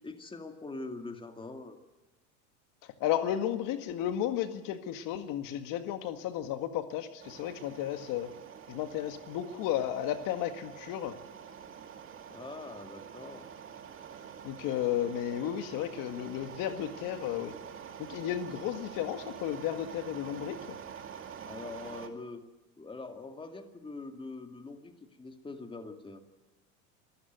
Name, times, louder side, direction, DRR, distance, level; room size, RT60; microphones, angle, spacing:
voice 1, 0.0-1.8 12.3-13.5 21.4-22.4 22.8-26.2, left 3 dB, 15° left, 6 dB, 2.2 m, -43 dB
voice 2, 3.0-8.3 8.7-11.2 14.4-17.6 18.1-20.6, left 11 dB, 55° left, 8 dB, 1.8 m, -33 dB
sound 1, 7.2-22.1, right 8 dB, 30° right, 2.4 m, -47 dB
27.0 x 14.5 x 9.3 m, 1.1 s
supercardioid pair, 115°, 39 cm